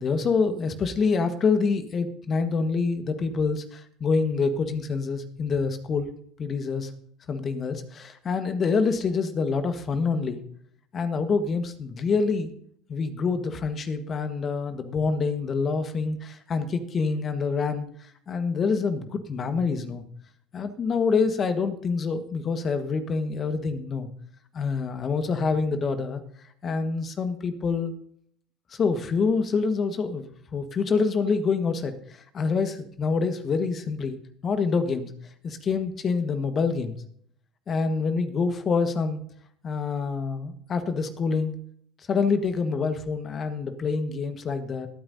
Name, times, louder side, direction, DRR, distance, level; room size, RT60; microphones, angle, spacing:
voice 1, 0.0-6.1 6.4-6.9 7.3-10.4 10.9-12.5 12.9-20.0 20.5-24.1 24.5-26.2 26.6-27.9 28.7-35.1 35.4-37.0 37.7-39.2 39.6-41.5 42.1-44.9, left 4 dB, 40° left, 9 dB, 1.4 m, -26 dB
21.5 x 9.0 x 2.7 m, 0.66 s
hypercardioid pair, 70°, 0 cm